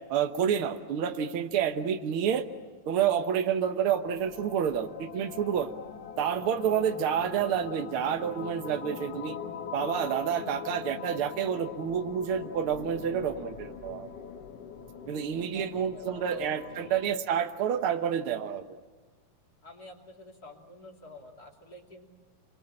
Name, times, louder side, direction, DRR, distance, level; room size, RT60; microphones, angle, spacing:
voice 1, 0.1-2.5 2.9-5.7 6.2-9.4 9.7-14.1 15.1-18.8, right 8 dB, 85° right, 6 dB, 1.1 m, -29 dB
sound 1, 4.0-17.2, left 7 dB, 55° left, 2.0 m, -42 dB
voice 2, 13.0-13.5 15.4-17.1 19.6-22.1, left 1 dB, 30° left, 1 dB, 2.9 m, -50 dB
28.0 x 23.5 x 8.9 m, 1.3 s
omnidirectional pair, 4.1 m